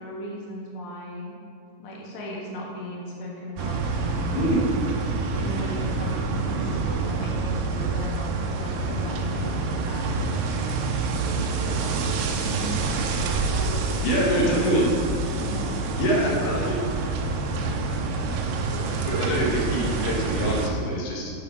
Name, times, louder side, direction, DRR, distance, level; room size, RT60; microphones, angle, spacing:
voice 1, 0.0-1.3 1.8-4.3 5.4-10.3 11.2-13.1 13.5-15.0 15.4-16.6, equal, 50° left, -3 dB, 1.6 m, -37 dB
sound 1, 3.6-20.7, right 3 dB, 85° right, 2.6 m, -27 dB
voice 2, 4.3-4.7 14.0-14.9 16.0-16.8 18.7-21.3, equal, 85° left, -2 dB, 3.6 m, -25 dB
7.5 x 7.2 x 5.7 m, 2.5 s
omnidirectional pair, 4.5 m